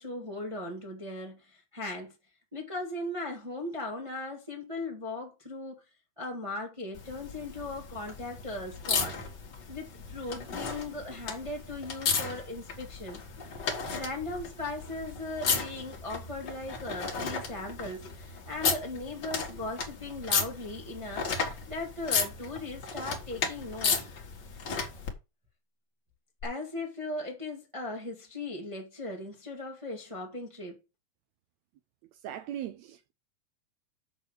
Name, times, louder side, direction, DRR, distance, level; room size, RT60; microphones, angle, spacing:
voice 1, 0.0-2.1 2.5-5.8 6.2-9.2 9.7-13.2 13.6-21.3 21.6-24.0 26.4-30.8, left 2 dB, 15° right, 1.3 m, -38 dB
sound 1, 6.9-25.1 26.4-26.5, left 5 dB, 45° left, 1.7 m, -34 dB
voice 2, 32.2-33.1, right 11 dB, 75° right, 1.7 m, -38 dB
6.6 x 6.0 x 6.4 m
omnidirectional pair, 3.7 m